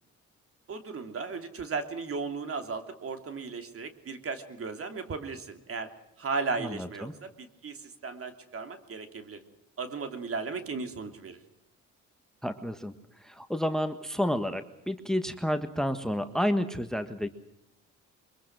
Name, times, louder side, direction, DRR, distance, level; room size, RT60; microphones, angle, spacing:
voice 1, 0.7-5.9 6.2-9.4 9.8-11.4, right 4 dB, 50° right, 7 dB, 3.1 m, -36 dB
voice 2, 6.6-7.1 12.4-12.9 13.2-17.3, equal, ahead, 9 dB, 1.5 m, -30 dB
23.5 x 23.0 x 6.1 m, 0.80 s
cardioid pair, 90°, 30 cm